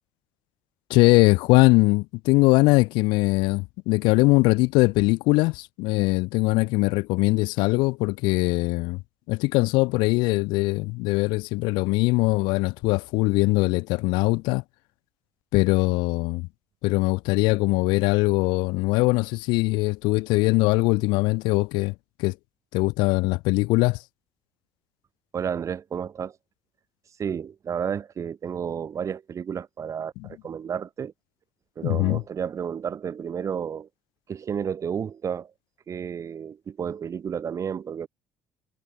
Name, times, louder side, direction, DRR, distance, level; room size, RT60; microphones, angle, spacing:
voice 1, 0.9-9.0 9.3-14.6 15.5-16.5 16.8-21.9 22.2-22.3 22.7-24.0 30.2-30.3 31.8-32.2, left 24 dB, 85° left, 1.4 m, -21 dB
voice 2, 25.3-26.4 27.2-31.1 31.8-33.9 34.3-35.5 35.9-38.1, right 7 dB, 40° right, 4.8 m, -31 dB
cardioid pair, 95°, 8 cm